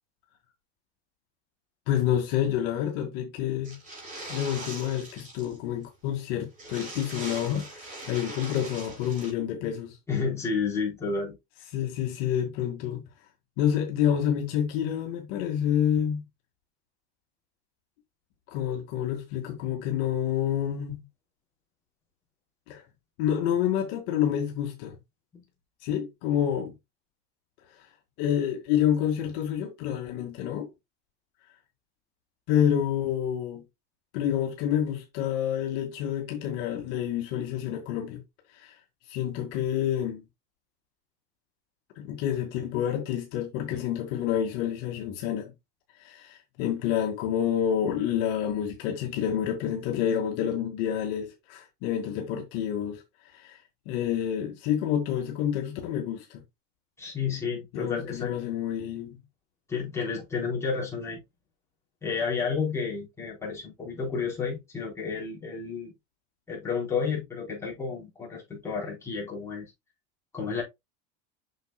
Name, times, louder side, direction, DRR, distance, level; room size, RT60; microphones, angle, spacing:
voice 1, 1.9-3.8 4.3-10.0 11.7-13.0 13.6-16.2 18.5-21.0 22.7-22.8 23.2-25.0 25.8-26.7 28.2-30.7 32.5-33.6 34.1-38.2 38.5-38.7 39.1-40.2 42.0-45.5 46.0-53.0 53.3-53.6 53.9-56.4 57.7-59.2, left 10 dB, 60° left, 2.2 m, -28 dB
sound 1, 3.6-5.6 5.8-5.9 6.2-6.3 6.5-9.3, right 2 dB, 25° right, 4.8 m, -41 dB
voice 2, 10.1-11.4 25.3-25.4 57.0-58.3 59.7-61.2 62.0-65.9 66.5-69.7 70.3-70.6, left 5 dB, 10° left, 4.1 m, -31 dB
8.0 x 6.4 x 2.3 m
cardioid pair, 170°, 32 cm